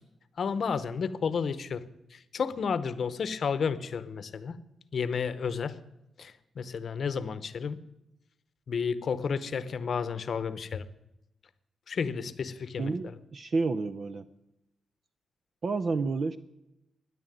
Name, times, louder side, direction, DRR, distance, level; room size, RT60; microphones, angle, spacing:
voice 1, 0.4-1.8 2.1-4.6 4.9-5.7 6.2-7.8 8.7-10.9 11.9-13.1, left 6 dB, 50° left, 14 dB, 0.9 m, -32 dB
voice 2, 12.8-14.2 15.6-16.4, right 4 dB, 40° right, 10 dB, 0.5 m, -30 dB
13.0 x 10.5 x 9.1 m, 0.91 s
wide cardioid pair, 155°, 0 cm